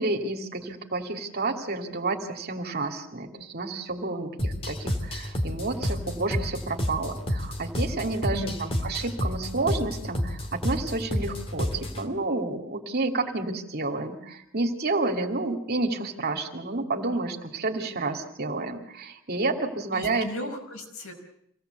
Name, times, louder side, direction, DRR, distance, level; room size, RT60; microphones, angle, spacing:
voice 1, 0.0-20.3, right 3 dB, 50° right, 4 dB, 2.6 m, -30 dB
sound 1, 4.4-12.1, equal, 30° left, 2.3 m, -30 dB
voice 2, 8.3-8.9 20.0-21.1, left 1 dB, 80° left, 2 dB, 5.5 m, -36 dB
25.5 x 17.5 x 8.2 m, 0.73 s
head